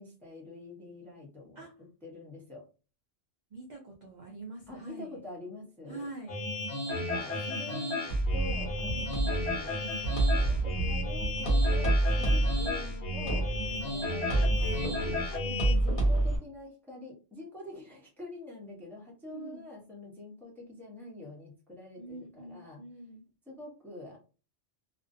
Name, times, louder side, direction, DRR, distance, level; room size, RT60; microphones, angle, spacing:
voice 1, 0.0-1.7 2.0-2.6 4.7-6.1 6.8-9.7 10.1-13.5 13.8-15.2 15.7-22.8 23.5-24.2, left 2 dB, ahead, -2 dB, 0.5 m, -45 dB
voice 2, 3.5-5.2 5.9-6.4 8.9-9.4 13.7-13.9 15.4-15.6 15.8-16.3 19.3-19.7 22.0-23.2, right 2 dB, 60° right, 0 dB, 0.4 m, -45 dB
sound 1, 6.3-15.7, left 2 dB, 80° left, 1.1 m, -34 dB
sound 2, 8.1-16.4, right 2 dB, 45° left, 1.1 m, -28 dB
2.5 x 2.1 x 2.5 m, 0.35 s
omnidirectional pair, 1.3 m